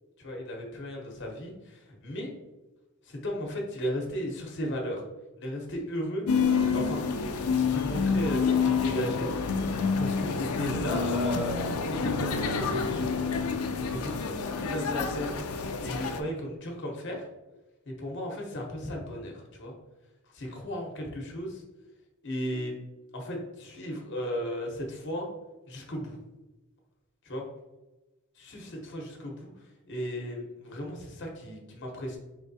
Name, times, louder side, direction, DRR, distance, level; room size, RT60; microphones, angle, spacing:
voice 1, 0.2-2.3 3.0-5.0 5.4-7.0 7.5-9.3 10.0-13.3 13.8-17.2 17.9-19.7 20.3-21.6 22.2-22.7 23.1-25.3 25.7-26.2 27.3-27.4 28.4-29.5 29.9-32.2, equal, 55° left, 0 dB, 0.9 m, -35 dB
sound 1, 6.3-16.2, left 5 dB, 85° left, 0.4 m, -28 dB
4.4 x 3.3 x 2.7 m, 1.1 s
head